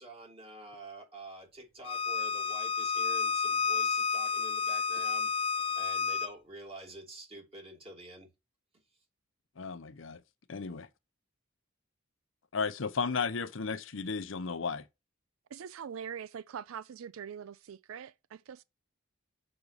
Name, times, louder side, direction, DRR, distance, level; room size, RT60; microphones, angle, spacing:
voice 1, 0.0-8.3, right 2 dB, 30° right, 2.7 m, -48 dB
Bowed string instrument, 1.8-6.3, left 6 dB, 25° left, 0.4 m, -30 dB
voice 2, 9.6-10.2 10.5-10.9 12.5-14.9, left 5 dB, 65° left, 0.7 m, -34 dB
voice 3, 15.5-18.6, right 7 dB, 85° right, 0.4 m, -43 dB
5.9 x 5.4 x 6.7 m
head